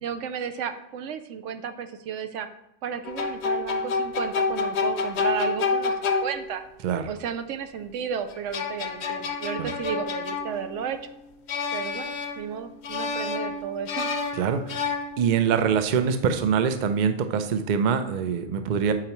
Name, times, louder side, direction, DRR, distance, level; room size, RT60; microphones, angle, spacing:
voice 1, 0.0-2.5 2.8-6.6 7.1-11.1 11.7-14.1, right 7 dB, 80° right, 9 dB, 0.9 m, -33 dB
sound 1, 3.0-6.7 8.3-11.0 11.5-12.6 12.8-15.5, left 4 dB, 65° left, 0.9 m, -29 dB
voice 2, 14.4-18.9, right 7 dB, 55° right, 8 dB, 0.6 m, -24 dB
8.7 x 4.5 x 3.0 m, 0.92 s
omnidirectional pair, 1.3 m